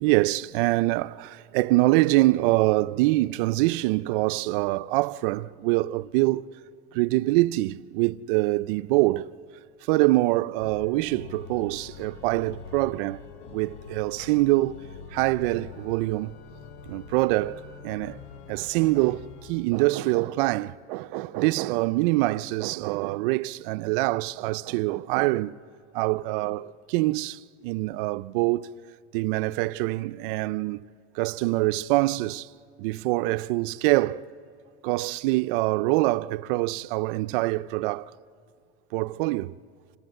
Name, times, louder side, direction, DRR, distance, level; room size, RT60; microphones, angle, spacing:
voice 1, 0.0-6.5 6.9-9.3 9.9-13.2 13.5-14.8 15.1-16.3 16.9-18.2 18.5-25.6 25.9-28.7 29.1-30.8 31.1-32.5 32.8-34.3 34.8-38.1 38.9-39.5, right 19 dB, 55° right, 0.4 m, -25 dB
Organ, 10.6-19.8, left 6 dB, 75° left, 1.3 m, -44 dB
26.5 x 16.0 x 7.7 m
supercardioid pair, 155°, 34 cm